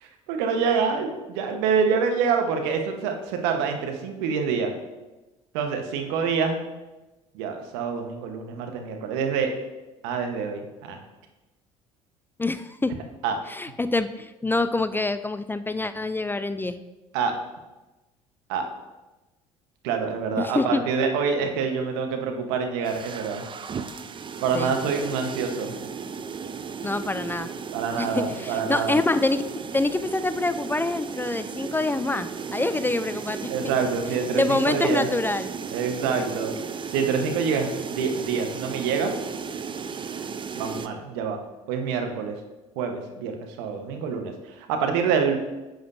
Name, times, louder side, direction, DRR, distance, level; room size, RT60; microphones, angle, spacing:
voice 1, 0.0-4.7 5.5-6.6 7.3-9.5 10.0-11.0 13.2-13.6 17.1-17.3 18.5-18.7 19.8-23.4 24.4-25.8 27.7-29.0 33.5-35.1 35.7-36.5 36.9-39.1 40.5-41.4 41.7-42.3 42.8-44.3 44.6-45.3, right 6 dB, 75° right, 5 dB, 1.2 m, -26 dB
voice 2, 12.4-12.9 13.5-16.8 20.4-20.8 24.5-24.7 26.8-27.5 28.0-29.4 29.7-33.7 34.3-35.5, left 2 dB, 15° left, 12 dB, 0.4 m, -26 dB
sound 1, 22.8-40.9, right 6 dB, 30° right, 0.6 m, -35 dB
10.0 x 7.8 x 2.7 m, 1.1 s
hypercardioid pair, 65°, 16 cm